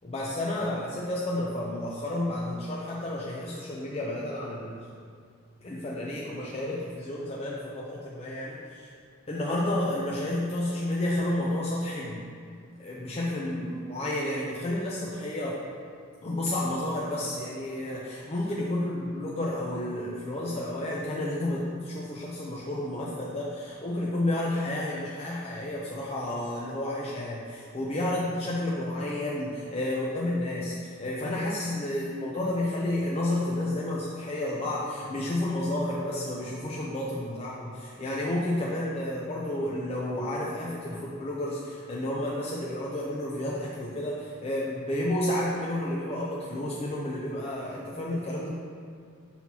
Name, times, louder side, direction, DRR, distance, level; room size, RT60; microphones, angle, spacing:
voice 1, 0.0-4.8 5.6-8.9 9.3-12.2 12.8-15.6 16.2-48.5, left 1 dB, 30° left, -5 dB, 0.5 m, -31 dB
5.9 x 5.6 x 2.9 m, 2.2 s
head